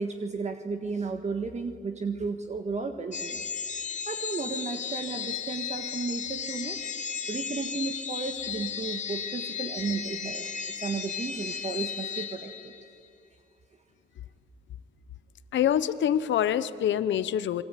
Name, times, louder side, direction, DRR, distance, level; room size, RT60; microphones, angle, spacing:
voice 1, 0.0-3.4 4.1-6.8 7.3-12.7, right 4 dB, 35° right, 5 dB, 1.7 m, -34 dB
sound 1, 3.1-12.9, left 7 dB, 35° left, 2.4 m, -35 dB
voice 2, 15.5-17.6, left 10 dB, 70° left, 14 dB, 1.0 m, -25 dB
27.0 x 22.0 x 9.3 m, 2.4 s
cardioid pair, 90°, 20 cm